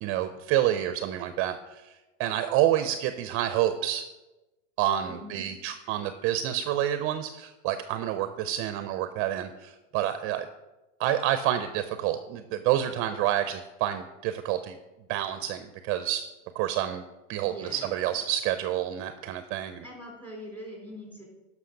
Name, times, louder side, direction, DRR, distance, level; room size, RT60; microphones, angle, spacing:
voice 1, 0.0-1.9 2.2-4.0 4.8-10.5 11.0-14.8 15.1-16.2 16.5-17.0 17.3-19.8, right 12 dB, 40° right, 10 dB, 0.6 m, -28 dB
voice 2, 5.1-5.5 5.8-5.9 17.4-18.2 19.8-21.2, equal, 5° left, -1 dB, 3.7 m, -43 dB
11.5 x 6.1 x 5.2 m, 1.1 s
supercardioid pair, 130°, 36 cm